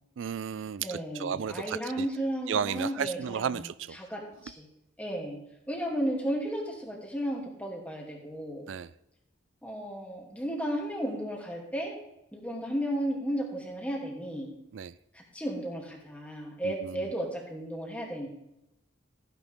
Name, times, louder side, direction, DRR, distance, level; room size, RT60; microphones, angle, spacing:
voice 1, 0.2-2.1 2.5-4.0 8.7-8.9 14.7-14.9 16.6-17.1, right 7 dB, 80° right, 18 dB, 0.4 m, -33 dB
voice 2, 0.8-4.2 4.6-4.7 5.0-5.4 5.7-8.7 9.6-12.0 12.3-14.5 15.1-18.3, equal, 5° left, -1 dB, 2.6 m, -34 dB
15.5 x 10.0 x 3.5 m, 0.85 s
head